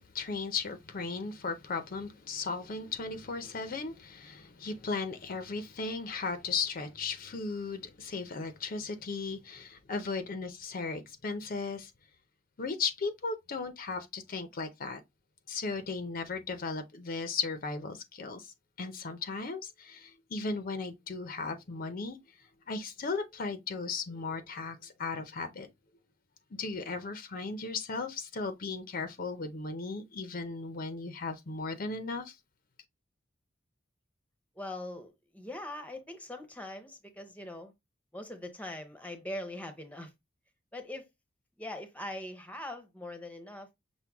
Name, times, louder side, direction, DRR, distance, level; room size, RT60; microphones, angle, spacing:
voice 1, 0.0-11.9 12.6-15.0 15.5-22.2 22.7-25.7 26.5-32.4, left 4 dB, 45° left, 0.6 m, -36 dB
voice 2, 34.6-37.7 38.1-40.1 40.7-41.0 41.6-43.7, left 1 dB, 10° left, 0.7 m, -41 dB
6.0 x 2.1 x 3.4 m
head